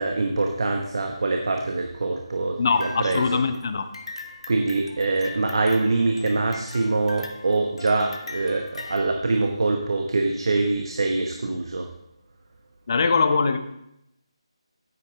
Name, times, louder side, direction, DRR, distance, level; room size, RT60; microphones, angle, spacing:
voice 1, 0.0-3.4 4.5-11.9, right 3 dB, 60° right, 2 dB, 1.0 m, -24 dB
voice 2, 2.6-3.9 12.9-13.6, left 4 dB, 40° left, 9 dB, 0.8 m, -22 dB
sound 1, 2.7-9.1, left 2 dB, 70° left, 1.1 m, -40 dB
9.8 x 8.5 x 3.7 m, 0.82 s
figure-of-eight pair, 165°, 3 cm